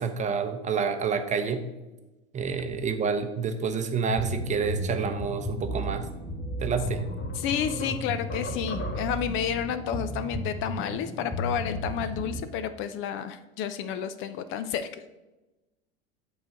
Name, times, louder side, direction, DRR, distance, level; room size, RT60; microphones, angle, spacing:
voice 1, 0.0-1.6 2.3-6.1 6.6-7.1, right 5 dB, 25° right, 7 dB, 0.7 m, -28 dB
sound 1, 4.1-12.4, equal, ahead, 2.3 m, -34 dB
sound 2, 6.2-6.3 6.8-9.4, left 1 dB, 60° left, 2.1 m, -40 dB
voice 2, 7.3-14.9, left 9 dB, 40° left, 12 dB, 0.5 m, -31 dB
7.7 x 3.9 x 4.4 m, 1.1 s
hypercardioid pair, 100°, 31 cm